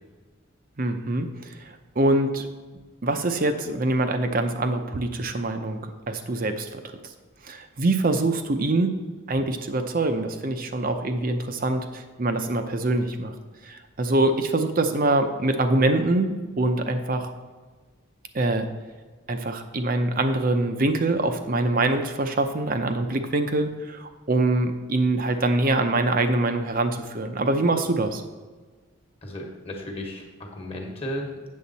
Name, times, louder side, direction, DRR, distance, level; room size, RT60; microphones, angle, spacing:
voice 1, 0.8-2.5 3.0-5.8 6.1-6.8 7.4-13.3 13.6-17.3 18.3-18.7 19.3-28.2, right 2 dB, 45° right, 7 dB, 0.7 m, -24 dB
voice 2, 29.2-31.3, equal, 30° left, 1 dB, 1.3 m, -34 dB
8.5 x 7.0 x 4.1 m, 1.4 s
head